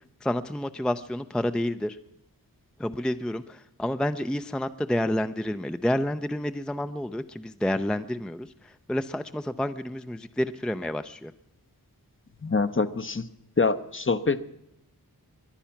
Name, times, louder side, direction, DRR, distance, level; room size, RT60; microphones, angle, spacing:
voice 1, 0.2-2.0 2.8-11.3, left 1 dB, ahead, 10 dB, 0.5 m, -29 dB
voice 2, 12.4-13.3 13.6-14.4, left 4 dB, 30° left, 11 dB, 0.8 m, -25 dB
22.5 x 10.0 x 5.8 m, 0.82 s
wide cardioid pair, 45°, 38 cm